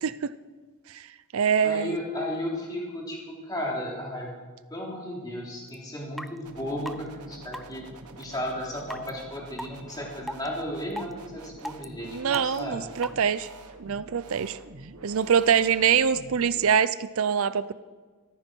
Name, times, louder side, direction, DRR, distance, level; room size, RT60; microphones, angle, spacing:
voice 1, 0.0-0.3 0.9-1.1 1.3-2.0 12.0-13.5 13.8-14.6 15.0-17.7, right 7 dB, 65° right, 15 dB, 0.5 m, -24 dB
voice 2, 1.6-4.4 4.7-7.9 8.2-12.9, left 1 dB, 20° left, -3 dB, 3.3 m, -34 dB
sound 1, 5.7-5.8 6.2-6.3 6.9-7.0 7.5-7.7 8.2-8.3 8.9-9.1 9.6-9.7 10.3-10.5 10.9-11.1 11.6-11.9 12.3-12.6 13.0-13.1, equal, ahead, 0.4 m, -35 dB
sound 2, 6.4-16.7, right 2 dB, 90° right, 1.2 m, -47 dB
14.5 x 14.0 x 4.5 m, 1.4 s
head